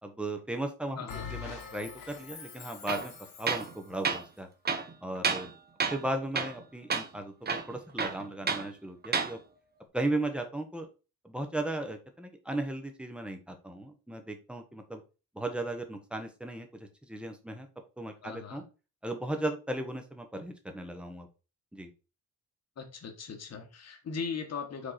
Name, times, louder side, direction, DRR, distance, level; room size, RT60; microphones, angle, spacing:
voice 1, 0.0-1.0 1.3-3.1 3.4-4.5 5.0-5.5 5.9-7.3 7.7-9.4 9.9-10.9 11.2-15.0 15.3-17.7 18.0-18.6 19.0-21.3 21.7-21.9, right 1 dB, 5° right, 5 dB, 1.1 m, -36 dB
voice 2, 0.9-1.3 18.2-18.6 22.8-24.9, left 5 dB, 50° left, 4 dB, 1.5 m, -39 dB
Bell, 1.1-3.9, left 6 dB, 70° left, 1.9 m, -44 dB
Tools, 2.9-3.1 3.5-3.7 4.0-4.2 4.7-5.5 5.8-6.1 6.4-6.6 6.9-7.1 7.5-8.7 9.0-9.3, right 5 dB, 30° right, 0.8 m, -30 dB
5.2 x 4.7 x 4.2 m, 0.31 s
wide cardioid pair, 155°, 34 cm